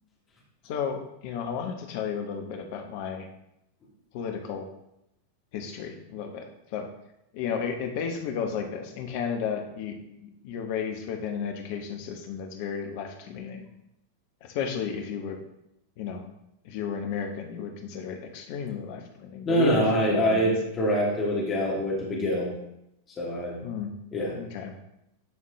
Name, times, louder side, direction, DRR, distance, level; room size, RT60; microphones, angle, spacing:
voice 1, 0.6-3.3 4.1-4.7 5.5-6.4 6.7-6.9 7.3-9.9 10.2-13.6 14.4-15.4 16.0-16.3 16.6-19.8 20.1-20.5 23.6-23.9 24.3-24.7, left 7 dB, 50° left, 4 dB, 1.1 m, -33 dB
voice 2, 19.5-22.5 23.2-23.6 24.1-24.3, equal, 25° left, -4 dB, 2.1 m, -25 dB
10.5 x 4.3 x 3.1 m, 0.84 s
figure-of-eight pair, 90°, 0 cm